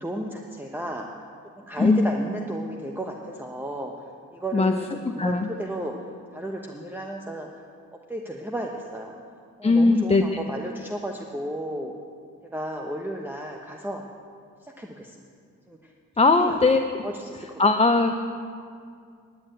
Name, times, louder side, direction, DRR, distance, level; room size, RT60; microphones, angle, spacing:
voice 1, 0.0-1.1 1.6-3.9 4.3-4.9 5.1-5.9 6.3-7.5 8.1-9.1 9.6-11.9 12.5-14.0 14.6-15.1 15.7-15.8 16.3-16.7 17.0-17.4, right 1 dB, 5° right, 1 dB, 1.0 m, -33 dB
voice 2, 1.8-2.2 4.5-4.7 5.2-5.5 9.6-10.2 16.2-16.8 17.4-18.1, left 3 dB, 20° left, 5 dB, 0.6 m, -19 dB
11.0 x 7.9 x 9.1 m, 2.2 s
cardioid pair, 70°, 32 cm